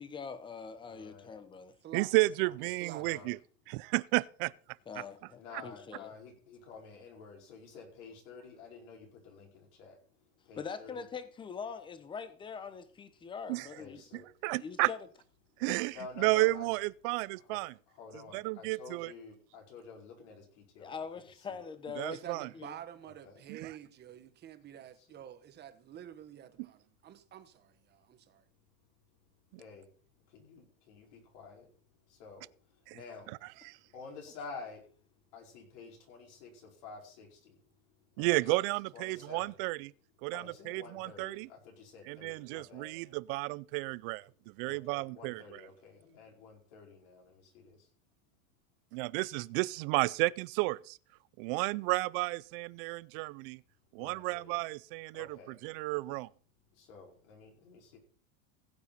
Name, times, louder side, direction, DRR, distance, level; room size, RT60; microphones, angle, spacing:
voice 1, 0.0-1.7 4.9-6.1 10.6-14.0 14.6-15.0 20.8-22.8, left 6 dB, 10° left, 0.8 m, -43 dB
voice 2, 0.8-1.3 2.6-3.4 5.4-10.0 10.5-11.0 13.6-14.3 15.6-16.7 17.3-17.6 17.9-21.1 21.3-21.7 23.0-23.4 25.0-25.1 29.6-29.9 30.3-31.7 32.2-32.5 32.9-33.3 33.9-34.8 35.3-37.6 38.2-38.5 38.9-39.5 40.3-42.9 44.6-47.8 54.0-54.5 55.1-55.5 56.8-58.0, left 4 dB, 55° left, 5.0 m, -50 dB
voice 3, 1.9-3.4 3.7-4.5 5.0-5.1 5.5-5.6 13.5-13.7 14.1-14.9 15.6-17.7 18.3-19.1 22.0-22.5 23.5-23.7 32.9-33.0 33.6-33.8 38.2-39.9 40.2-41.5 42.1-45.6 48.9-51.0 51.4-53.6 53.9-56.3, right 23 dB, 45° right, 0.4 m, -32 dB
voice 4, 22.1-28.4, right 10 dB, 25° right, 1.1 m, -49 dB
16.0 x 8.6 x 4.2 m
supercardioid pair, 150°, 40 cm